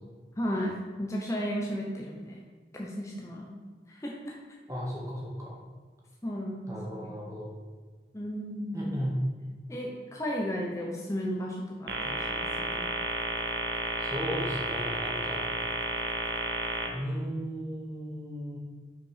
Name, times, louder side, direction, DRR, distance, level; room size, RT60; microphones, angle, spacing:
voice 1, 0.4-2.4 2.7-3.6 3.9-4.4 6.2-6.7 7.0-7.1 8.1-8.9 9.7-12.9, equal, 15° left, -2 dB, 0.8 m, -34 dB
voice 2, 4.7-5.6 6.7-7.5 8.7-9.1 14.0-15.4 16.9-18.6, equal, 20° right, -5 dB, 1.8 m, -35 dB
sound 1, 11.9-16.9, right 2 dB, 85° right, 1.1 m, -32 dB
5.8 x 5.7 x 5.7 m, 1.4 s
head